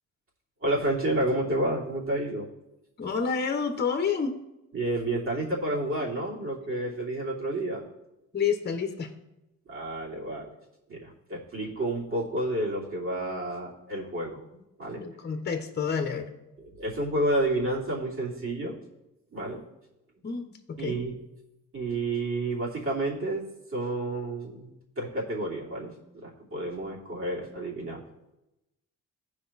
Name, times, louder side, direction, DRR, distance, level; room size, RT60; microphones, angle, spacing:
voice 1, 0.6-2.5 4.7-7.8 9.7-10.5 10.9-14.4 14.8-15.0 16.6-18.7 19.3-19.6 20.8-21.1 21.7-23.4 23.7-25.9 26.2-28.0, right 1 dB, 45° right, -4 dB, 3.0 m, -30 dB
voice 2, 3.0-4.4 8.3-9.1 14.9-16.3 20.2-21.0, left 6 dB, 35° left, 6 dB, 1.1 m, -29 dB
15.0 x 5.1 x 4.2 m, 0.93 s
cardioid pair, 90°, 30 cm